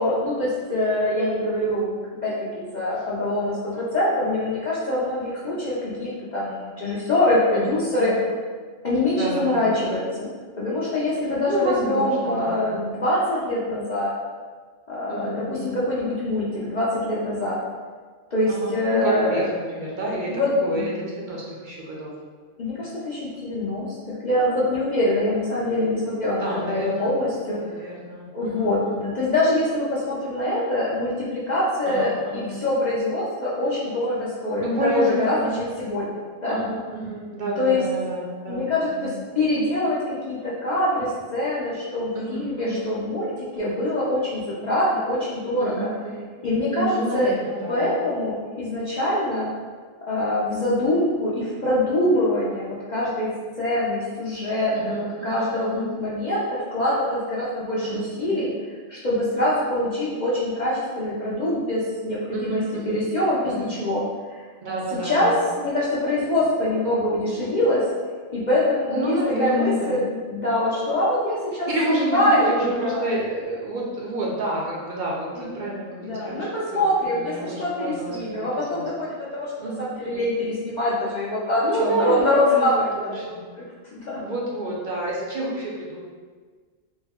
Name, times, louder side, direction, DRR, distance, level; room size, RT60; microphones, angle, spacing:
voice 1, 0.0-1.9 2.2-8.1 8.8-14.1 14.9-17.6 18.3-19.4 20.3-20.8 22.6-24.0 24.2-27.6 28.3-36.6 37.6-37.8 38.5-39.1 39.4-45.9 46.4-47.3 47.7-49.5 50.1-53.3 53.6-56.4 56.7-58.5 58.9-64.0 64.3-64.4 65.0-65.3 65.6-67.8 68.3-71.7 72.1-73.0 75.3-75.7 76.0-83.3 83.9-84.2, left 1 dB, 50° left, -8 dB, 0.5 m, -24 dB
voice 2, 7.5-8.2 9.1-9.6 11.4-12.7 15.1-15.8 18.5-22.1 26.4-29.1 31.9-32.6 34.6-35.5 36.5-38.7 38.9-39.2 42.1-42.8 45.6-46.3 46.7-47.8 54.7-55.9 57.8-58.5 62.3-63.0 63.4-63.7 64.6-65.3 68.9-70.0 71.7-78.9 79.6-80.2 81.6-83.4 84.2-86.0, right 1 dB, 55° right, -4 dB, 0.6 m, -29 dB
3.5 x 2.1 x 3.4 m, 1.5 s
omnidirectional pair, 1.3 m